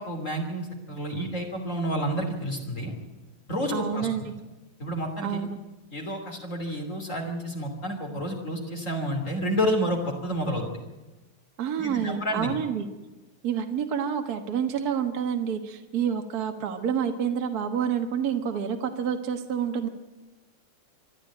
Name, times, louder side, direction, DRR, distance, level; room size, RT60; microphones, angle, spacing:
voice 1, 0.0-2.9 3.5-4.1 4.8-5.4 5.9-10.8 11.8-12.5, equal, 35° left, 2 dB, 3.3 m, -30 dB
voice 2, 3.7-4.3 5.2-5.6 11.6-12.9 13.4-19.9, right 8 dB, 50° right, 6 dB, 1.8 m, -28 dB
25.5 x 12.0 x 9.0 m, 1.1 s
omnidirectional pair, 2.3 m